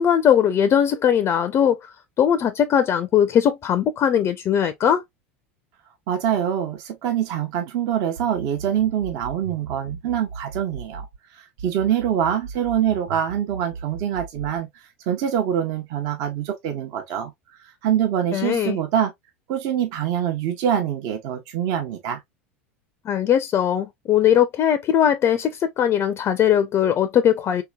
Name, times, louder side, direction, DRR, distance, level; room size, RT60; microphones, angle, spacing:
voice 1, 0.0-1.9 2.2-5.0 18.3-18.8 23.1-27.6, left 9 dB, 40° left, 0.4 m, -20 dB
voice 2, 6.1-11.1 11.4-14.7 15.1-17.3 17.8-19.1 19.5-22.2, right 9 dB, 60° right, 0.9 m, -24 dB
sound 1, 8.2-11.2 11.6-14.6, right 5 dB, 80° right, 0.3 m, -37 dB
3.4 x 2.9 x 2.2 m
hypercardioid pair, 85°, 7 cm